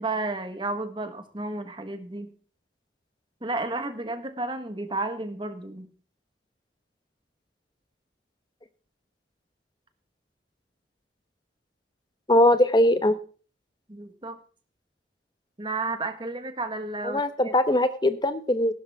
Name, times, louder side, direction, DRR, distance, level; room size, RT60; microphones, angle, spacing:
voice 1, 0.0-2.3 3.4-5.9 13.9-14.4 15.6-17.5, right 2 dB, 25° right, 8 dB, 1.5 m, -32 dB
voice 2, 12.3-13.1 17.0-18.7, left 1 dB, 25° left, 11 dB, 1.0 m, -21 dB
16.0 x 12.0 x 3.6 m, 0.40 s
head